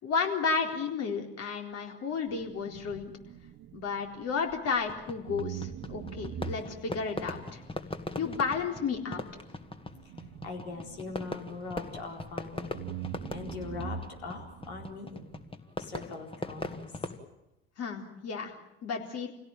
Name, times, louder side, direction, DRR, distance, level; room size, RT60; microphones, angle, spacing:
voice 1, 0.0-3.1 3.7-7.6 8.2-9.3 17.8-19.3, left 5 dB, 50° left, 3 dB, 4.1 m, -32 dB
sound 1, 2.3-4.9 5.3-12.3 12.7-15.5, right 8 dB, 50° right, 1.4 m, -44 dB
Fireworks, 4.9-17.2, left 2 dB, 15° left, 2.0 m, -40 dB
voice 2, 10.4-15.3 15.8-16.9, left 4 dB, 85° left, 2 dB, 4.5 m, -41 dB
27.0 x 17.0 x 9.2 m, 0.90 s
hypercardioid pair, 70°, 31 cm